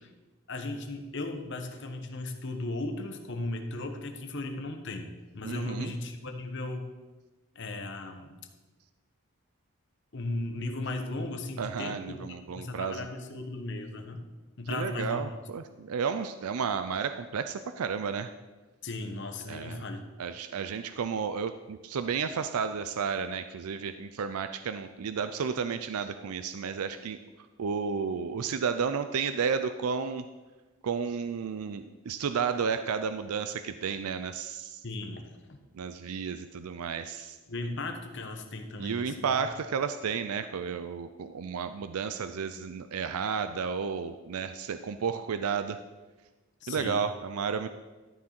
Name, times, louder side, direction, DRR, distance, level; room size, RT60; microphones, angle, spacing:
voice 1, 0.5-6.9 7.5-8.3 10.1-12.2 12.5-14.2 14.6-15.2 18.8-20.0 34.8-35.6 37.5-39.4 46.6-47.0, left 2 dB, 55° left, 5 dB, 1.0 m, -36 dB
voice 2, 5.4-5.9 11.6-13.0 14.7-18.3 19.5-19.8 20.2-27.2 27.6-30.2 30.8-34.8 35.7-37.4 38.8-45.8 46.7-47.7, right 6 dB, 85° right, 10 dB, 0.4 m, -32 dB
13.5 x 6.3 x 4.4 m, 1.2 s
head